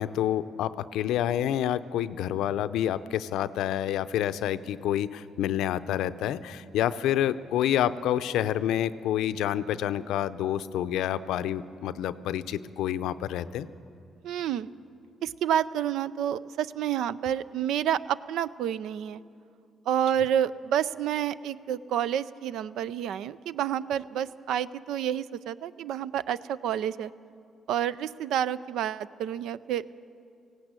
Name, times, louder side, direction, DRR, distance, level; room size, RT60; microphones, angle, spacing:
voice 1, 0.0-13.7, left 11 dB, 85° left, 14 dB, 0.5 m, -28 dB
voice 2, 14.2-14.7 15.2-19.2 19.9-27.1 27.7-29.9, right 10 dB, 85° right, 17 dB, 0.5 m, -29 dB
18.0 x 16.0 x 8.9 m, 2.4 s
cardioid pair, 90°, 0 cm